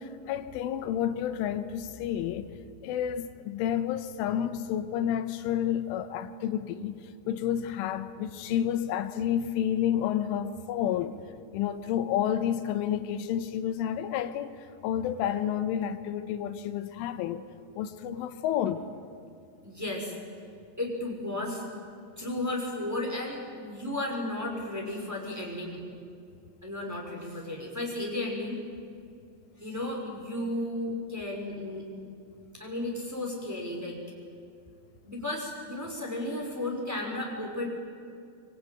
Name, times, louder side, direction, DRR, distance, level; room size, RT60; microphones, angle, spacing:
voice 1, 0.0-2.5 2.8-7.0 7.3-11.2 11.5-14.5 14.8-17.5 17.8-18.8, left 10 dB, 85° left, 10 dB, 3.5 m, -30 dB
voice 2, 19.6-20.1 20.8-21.6 22.2-25.8 26.6-28.6 29.6-31.8 32.6-34.0 35.0-37.7, left 1 dB, 5° right, -1 dB, 5.0 m, -34 dB
25.0 x 24.0 x 9.3 m, 2.4 s
omnidirectional pair, 5.6 m